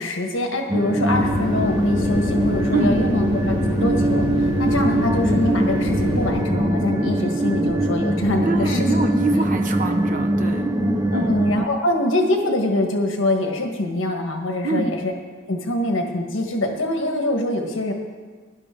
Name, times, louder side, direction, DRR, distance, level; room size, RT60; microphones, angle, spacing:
voice 1, 0.0-3.6 3.8-8.9 10.4-15.1 15.5-17.9, left 1 dB, 70° left, 3 dB, 1.5 m, -24 dB
sound 1, 0.7-11.7, right 1 dB, 15° right, 0.5 m, -22 dB
sound 2, 1.1-6.5, left 2 dB, 90° left, 0.7 m, -28 dB
voice 2, 8.4-10.8 11.1-11.3 14.6-14.9, right 2 dB, 40° right, 4 dB, 1.0 m, -24 dB
17.0 x 11.5 x 3.8 m, 1.5 s
head